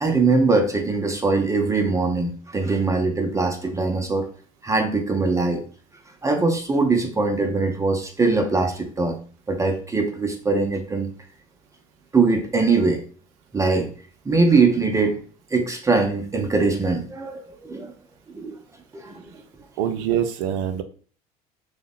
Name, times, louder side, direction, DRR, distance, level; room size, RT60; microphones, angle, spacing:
voice 1, 0.0-4.3 4.6-5.6 6.2-9.2 9.5-11.1 12.1-13.0 13.5-13.9 14.2-15.2 15.5-17.9 18.3-18.6 18.9-19.4, right 3 dB, 15° right, 3 dB, 0.6 m, -22 dB
voice 2, 19.8-20.8, right 9 dB, 65° right, 9 dB, 0.5 m, -24 dB
2.8 x 2.2 x 4.0 m, 0.42 s
hypercardioid pair, 70°, 18 cm